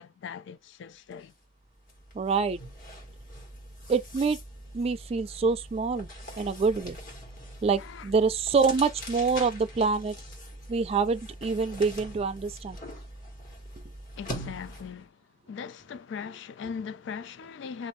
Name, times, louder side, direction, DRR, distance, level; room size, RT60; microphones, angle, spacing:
voice 1, 0.0-1.3 7.8-8.1 14.2-15.1 15.5-17.9, left 6 dB, 65° left, 0.3 m, -39 dB
sound 1, 1.1-1.3 1.6-15.0, equal, 45° left, 1.4 m, -43 dB
voice 2, 2.2-2.6 3.9-4.4 4.7-6.1 6.4-7.0 7.6-10.1 10.7-12.8, right 4 dB, 30° right, 0.3 m, -26 dB
2.6 x 2.5 x 3.1 m
head